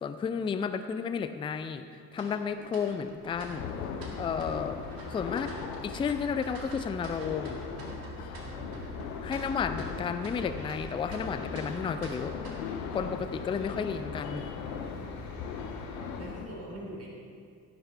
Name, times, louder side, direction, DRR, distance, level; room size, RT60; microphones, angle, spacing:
voice 1, 0.0-1.8 2.1-3.7 4.2-4.8 5.1-5.5 5.8-7.6 9.2-12.4 12.9-14.5, left 6 dB, 10° left, 10 dB, 0.4 m, -32 dB
sound 1, 2.1-13.0, right 2 dB, 50° right, 2.1 m, -47 dB
sound 2, 3.3-16.2, left 1 dB, 45° left, 2.5 m, -44 dB
sound 3, 3.5-16.5, left 7 dB, 65° left, 0.9 m, -40 dB
voice 2, 8.4-9.0 15.2-15.8 16.2-17.1, right 1 dB, 30° right, -2 dB, 2.9 m, -44 dB
16.0 x 6.8 x 4.4 m, 2.3 s
figure-of-eight pair, 50°, 47 cm